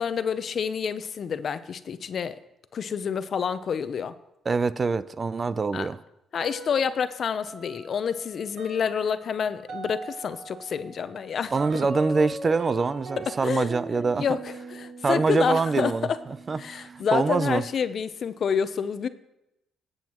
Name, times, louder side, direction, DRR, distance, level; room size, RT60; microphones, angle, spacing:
voice 1, 0.0-2.4 2.7-4.1 5.7-5.9 6.3-11.5 13.4-13.7 14.2-15.9 16.6-19.1, left 7 dB, 55° left, 0.6 m, -28 dB
voice 2, 4.5-6.0 11.5-14.2 15.0-16.1 16.5-17.6, right 4 dB, 35° right, 0.4 m, -25 dB
sound 1, 6.4-7.1 7.5-17.8, right 2 dB, 70° right, 2.1 m, -41 dB
19.0 x 8.0 x 3.0 m
cardioid pair, 90°, 0 cm